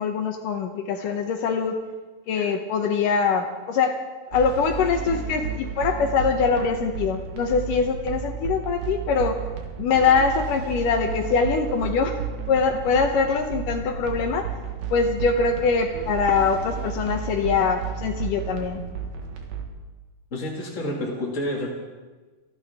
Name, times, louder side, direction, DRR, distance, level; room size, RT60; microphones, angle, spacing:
voice 1, 0.0-1.8 2.3-4.0 4.3-9.4 9.8-12.2 12.5-14.5 14.9-18.9, left 5 dB, 70° left, 5 dB, 2.2 m, -23 dB
sound 1, 4.3-19.7, right 6 dB, 60° right, 3.1 m, -33 dB
voice 2, 20.3-21.7, left 1 dB, 35° left, -3 dB, 1.2 m, -29 dB
29.0 x 13.0 x 3.6 m, 1.3 s
omnidirectional pair, 4.8 m